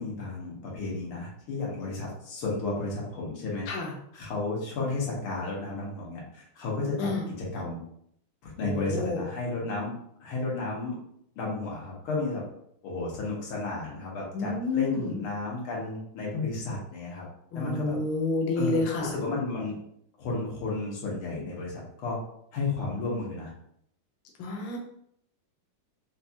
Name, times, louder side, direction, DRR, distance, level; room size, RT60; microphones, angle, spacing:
voice 1, 0.0-3.7 4.1-7.8 8.4-9.9 10.2-11.0 11.4-12.4 12.8-17.3 17.5-18.0 18.6-19.8 20.2-22.2 22.5-23.5, left 3 dB, 90° left, -4 dB, 2.0 m, -32 dB
voice 2, 8.6-9.2 14.3-15.2 17.5-19.1 24.4-24.8, left 3 dB, 70° left, 0 dB, 1.4 m, -29 dB
4.7 x 2.3 x 2.7 m, 0.70 s
omnidirectional pair, 2.3 m